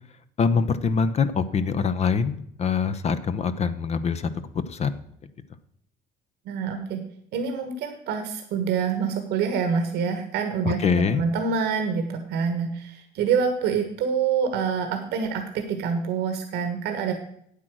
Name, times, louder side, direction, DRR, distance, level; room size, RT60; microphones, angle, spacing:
voice 1, 0.4-4.3 4.5-5.0 10.7-11.2, left 5 dB, 40° left, 12 dB, 0.7 m, -24 dB
voice 2, 6.4-7.0 7.3-10.8 11.2-17.1, right 6 dB, 85° right, 6 dB, 1.4 m, -26 dB
8.9 x 8.3 x 6.2 m, 0.70 s
cardioid pair, 110°, 17 cm